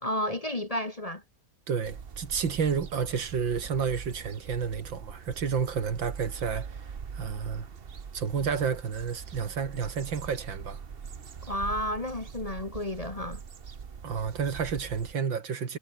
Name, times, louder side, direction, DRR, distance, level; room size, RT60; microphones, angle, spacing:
voice 1, 0.0-1.2 11.5-13.4, left 1 dB, 20° left, 1.2 m, -32 dB
voice 2, 1.7-7.7 8.1-10.8 14.0-15.8, right 6 dB, 90° right, 2.9 m, -31 dB
sound 1, 1.8-15.1, right 6 dB, 35° right, 1.1 m, -42 dB
omnidirectional pair, 2.0 m